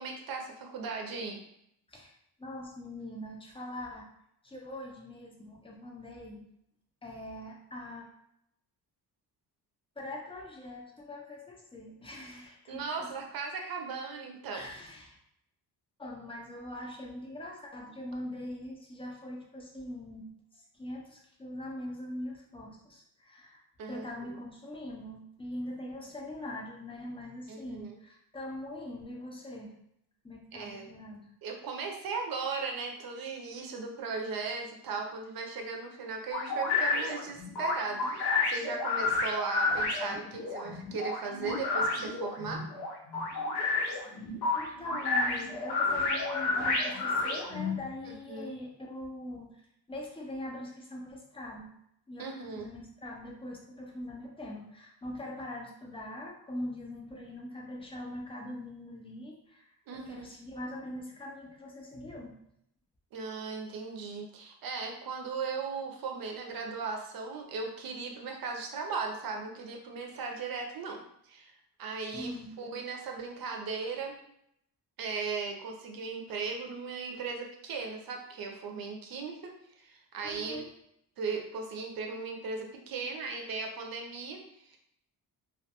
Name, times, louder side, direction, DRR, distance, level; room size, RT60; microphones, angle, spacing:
voice 1, 0.0-1.4 12.7-14.7 23.8-24.4 27.5-27.9 30.5-30.8 31.4-42.6 48.1-48.5 52.2-52.7 59.9-60.3 63.1-71.5 71.8-72.3 72.6-74.2 75.0-79.5 79.8-80.6 81.2-84.8, right 4 dB, 60° right, 2 dB, 0.6 m, -37 dB
voice 2, 2.4-4.1 4.4-6.5 7.0-8.1 10.0-13.1 14.5-15.2 16.0-20.3 20.5-29.7 30.2-31.3 44.0-44.2 44.5-49.6 49.9-51.7 52.1-62.3 72.1-72.5 80.2-80.7, left 1 dB, 15° left, 0 dB, 0.4 m, -42 dB
sound 1, 36.3-47.8, left 3 dB, 70° left, 0.7 m, -30 dB
2.3 x 2.2 x 2.8 m, 0.75 s
cardioid pair, 145°, 40 cm